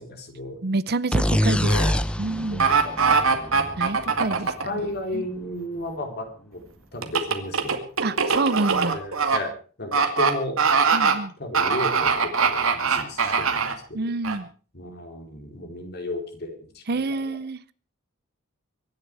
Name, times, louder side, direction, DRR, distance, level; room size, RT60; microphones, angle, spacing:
voice 1, 0.0-0.6 1.6-2.0 2.4-4.0 4.6-7.8 8.9-9.5 9.8-10.6 11.4-14.0 14.7-17.4, left 1 dB, 50° left, 4 dB, 3.8 m, -34 dB
voice 2, 0.6-1.8 2.2-2.7 3.8-4.8 5.1-5.2 8.0-9.0 10.9-11.3 13.9-14.5 16.9-17.7, right 3 dB, 50° right, 17 dB, 0.7 m, -27 dB
sound 1, 1.1-4.8, equal, 5° left, 0.7 m, -25 dB
sound 2, 2.6-4.6 7.0-9.4 9.9-10.3 10.6-11.1 11.5-13.7 14.2-14.4, right 5 dB, 85° right, 2.3 m, -21 dB
24.5 x 10.5 x 4.8 m, 0.40 s
head